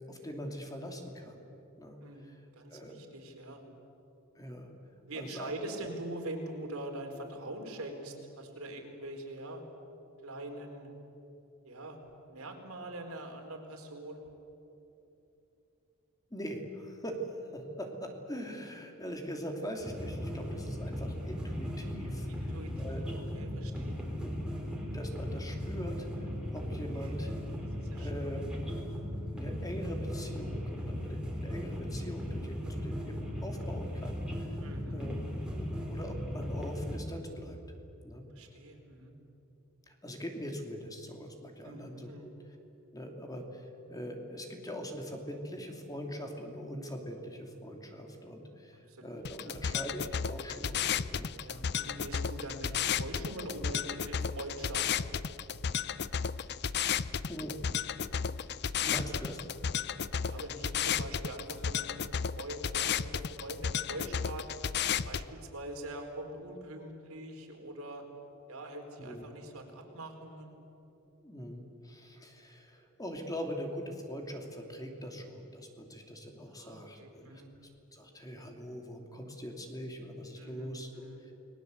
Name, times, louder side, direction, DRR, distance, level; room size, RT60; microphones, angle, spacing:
voice 1, 0.1-1.4 1.8-2.4 2.7-3.0 4.3-4.7 5.1-5.5 16.3-17.2 17.5-22.3 22.8-23.0 24.2-24.3 24.8-27.3 28.0-28.7 29.3-34.5 34.9-35.1 35.6-37.6 38.0-38.3 39.9-42.3 42.9-51.3 57.3-57.5 58.8-59.4 69.0-69.2 71.2-81.3, equal, 15° left, 3 dB, 2.8 m, -42 dB
voice 2, 2.0-3.6 5.1-9.6 10.2-10.9 11.6-12.0 12.3-14.2 22.3-23.1 23.3-24.0 27.0-27.2 27.8-28.1 34.6-35.0 38.3-39.1 41.6-42.3 48.9-49.8 51.4-55.1 60.2-64.5 65.0-68.0 68.5-70.5 76.5-77.5 80.4-81.2, right 1 dB, 75° right, 2 dB, 4.3 m, -43 dB
sound 1, 19.8-37.0, equal, 5° right, 4.1 m, -37 dB
sound 2, 49.2-65.2, left 7 dB, 50° left, 0.6 m, -33 dB
29.5 x 20.5 x 8.2 m, 3.0 s
head